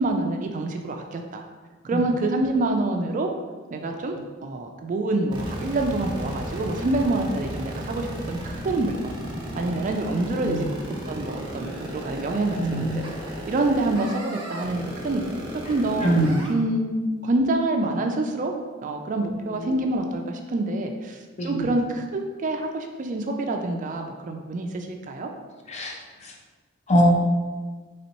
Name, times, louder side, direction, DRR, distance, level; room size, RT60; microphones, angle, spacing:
voice 1, 0.0-1.4 1.8-3.3 3.7-9.1 9.5-10.8 11.1-13.0 13.5-15.2 15.7-16.1 16.5-18.5 18.8-25.3, right 2 dB, 40° right, 4 dB, 0.3 m, -26 dB
sound 1, 5.3-16.5, right 1 dB, 20° right, 0.8 m, -34 dB
voice 2, 12.6-13.1 16.0-16.5 19.2-19.8 21.4-21.7 25.7-26.3 26.9-27.3, right 1 dB, 35° left, 0 dB, 0.6 m, -24 dB
4.1 x 3.4 x 2.9 m, 1.4 s
head